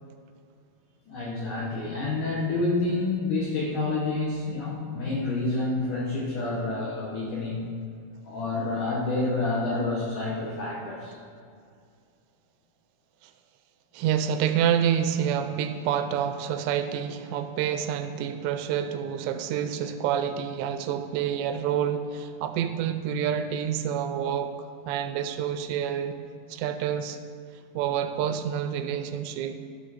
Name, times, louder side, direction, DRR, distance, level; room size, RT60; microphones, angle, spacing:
voice 1, 1.1-7.6 8.2-11.2, left 2 dB, 65° left, -4 dB, 2.1 m, -28 dB
voice 2, 13.9-24.5 24.9-26.2 26.5-27.2 27.8-29.6, right 9 dB, 85° right, 8 dB, 2.7 m, -28 dB
13.0 x 4.5 x 6.3 m, 2.3 s
omnidirectional pair, 5.1 m